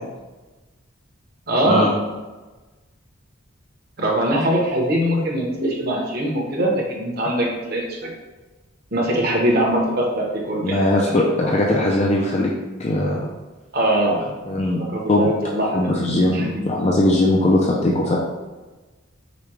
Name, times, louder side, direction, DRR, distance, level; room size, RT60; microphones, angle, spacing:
voice 1, 1.5-1.9 4.0-8.1 8.9-10.8 11.0-11.5 13.7-14.2 14.9-16.0 16.3-16.7, right 1 dB, 50° right, -2 dB, 1.0 m, -22 dB
voice 2, 10.6-12.5 12.8-13.2 14.5-14.8 15.1-15.3 15.7-18.2, left 1 dB, 30° left, -3 dB, 0.4 m, -19 dB
5.1 x 2.3 x 4.5 m, 1.2 s
head